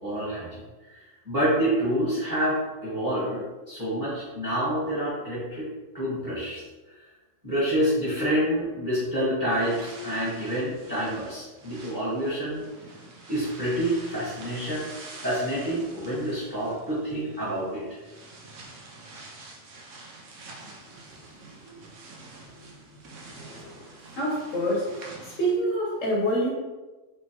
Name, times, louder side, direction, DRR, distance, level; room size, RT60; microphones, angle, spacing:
voice 1, 0.0-6.6 7.4-12.7 13.3-14.9 15.2-18.0 21.6-21.7 22.6-22.7 23.3-23.4, equal, 15° right, -10 dB, 1.4 m, -28 dB
sound 1, 9.5-25.5, right 2 dB, 90° right, 1.2 m, -47 dB
voice 2, 23.3-23.9 24.2-24.9 25.4-26.5, right 1 dB, 85° left, -3 dB, 1.2 m, -26 dB
4.6 x 3.0 x 2.9 m, 1.2 s
omnidirectional pair, 1.3 m